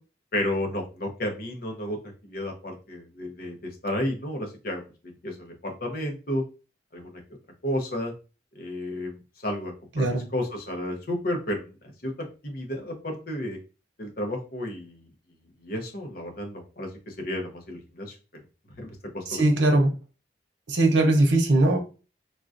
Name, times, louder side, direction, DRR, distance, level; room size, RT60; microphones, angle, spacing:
voice 1, 0.3-2.0 2.2-4.8 5.2-6.4 6.9-7.2 7.6-8.1 8.5-12.1 12.4-13.6 14.0-15.1 15.6-18.1 18.8-19.4, left 1 dB, 55° left, 2 dB, 0.8 m, -32 dB
voice 2, 10.0-10.3 19.3-19.9 20.7-21.8, right 2 dB, 85° right, 4 dB, 0.8 m, -20 dB
3.7 x 2.4 x 2.5 m, 0.33 s
head